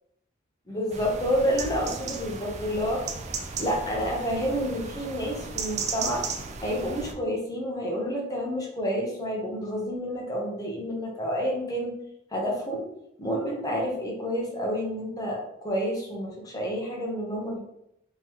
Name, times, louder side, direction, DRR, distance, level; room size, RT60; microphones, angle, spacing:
voice 1, 0.7-3.0 3.6-6.3 6.6-11.9 12.3-12.9 13.2-17.6, equal, 20° left, -1 dB, 0.8 m, -29 dB
sound 1, 0.9-7.1, right 4 dB, 35° right, 0.4 m, -35 dB
3.7 x 3.0 x 3.0 m, 0.80 s
head